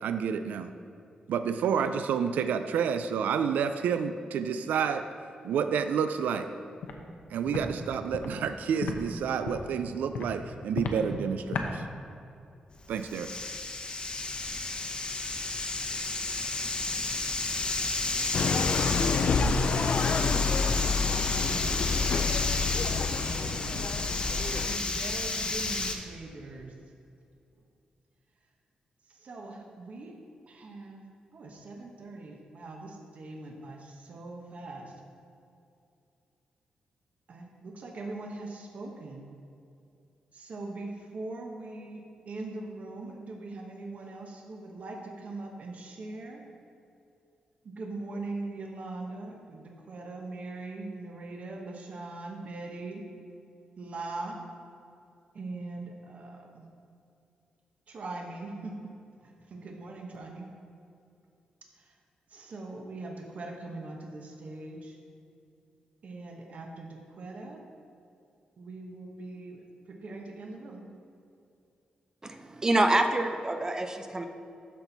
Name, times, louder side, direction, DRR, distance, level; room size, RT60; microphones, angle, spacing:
voice 1, 0.0-0.7 1.3-5.0 5.4-6.5 7.3-11.9 12.9-13.3, right 7 dB, 90° right, 9 dB, 0.3 m, -29 dB
Walk footsteps, 6.8-7.0 7.5-7.6 8.1-8.3 8.8-9.0 9.4-9.7 10.1-10.3 10.7-11.0 11.5-11.7, left 5 dB, 80° left, 0.7 m, -33 dB
sound 1, 12.7-25.9, left 2 dB, 35° left, 0.8 m, -32 dB
sound 2, 18.3-24.8, left 5 dB, 60° left, 0.4 m, -28 dB
voice 2, 21.3-23.8 24.3-26.7 29.1-30.1 30.5-31.0 31.3-34.9 37.3-39.3 40.3-46.4 47.8-53.0 53.8-54.4 55.3-56.7 57.9-58.7 59.2-60.5 61.8-62.0 62.3-65.0 66.0-67.6 68.6-70.9, right 2 dB, 60° right, 1 dB, 1.0 m, -41 dB
voice 3, 72.2-74.2, right 2 dB, 25° right, 6 dB, 0.6 m, -26 dB
13.0 x 4.4 x 4.0 m, 2.5 s
cardioid pair, 85°, 3 cm